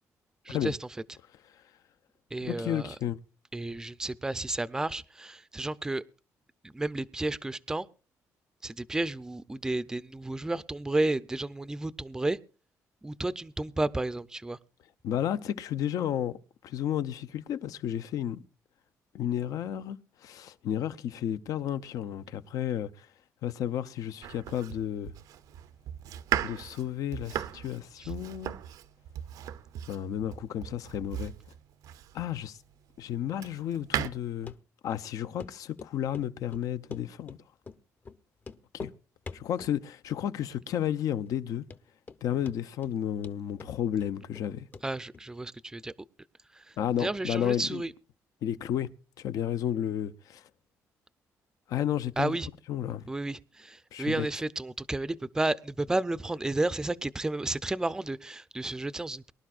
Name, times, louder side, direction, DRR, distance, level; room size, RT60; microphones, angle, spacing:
voice 1, 0.4-0.9 2.3-3.0 3.5-6.0 6.6-7.9 8.6-12.4 13.0-14.6 28.0-28.1 44.8-45.9 46.5-47.9 52.2-52.5 53.1-59.3, right 2 dB, 10° right, 0.5 m, -32 dB
voice 2, 2.4-3.2 15.0-16.4 16.6-18.4 19.1-20.0 20.2-22.9 23.4-25.1 26.4-28.5 29.9-31.3 32.1-32.5 33.0-34.5 34.8-37.4 38.7-38.9 39.3-41.6 42.2-44.7 46.8-47.8 48.4-48.9 49.2-50.4 51.7-52.4 52.7-53.1 53.9-54.3, left 10 dB, 70° left, 0.7 m, -32 dB
Domestic sounds home sounds, 24.2-32.4 32.9-34.1, right 10 dB, 85° right, 0.8 m, -37 dB
Run, 34.5-34.6 34.9-35.0 35.4-35.5 35.8-36.3 36.5-37.4 37.7-37.8 38.1-38.2 38.4-39.0 39.3-39.8 40.1-40.5 40.8-40.9 41.4-41.5 41.7-42.2 42.5-43.0 43.2-44.5 44.7-44.9 45.1-45.2, left 4 dB, 30° left, 0.7 m, -44 dB
23.5 x 11.5 x 2.5 m
cardioid pair, 130°, 6 cm